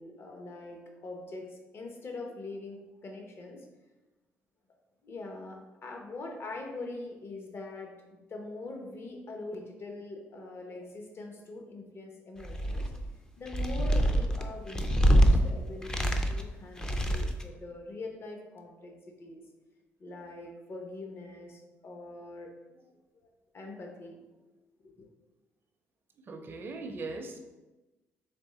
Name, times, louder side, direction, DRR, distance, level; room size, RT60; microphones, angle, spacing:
voice 1, 0.0-3.6 5.0-7.9 8.3-12.8 13.4-19.4 20.0-22.8 23.1-23.3 23.5-24.2 25.0-25.1, left 2 dB, 45° left, 2 dB, 0.8 m, -43 dB
sound 1, 12.4-13.1 13.5-15.4 15.8-16.5 16.8-17.5, equal, 15° left, 0.5 m, -25 dB
voice 2, 26.3-27.4, right 3 dB, 40° right, 3 dB, 0.5 m, -39 dB
3.5 x 3.2 x 4.1 m, 1.1 s
cardioid pair, 80°, 5 cm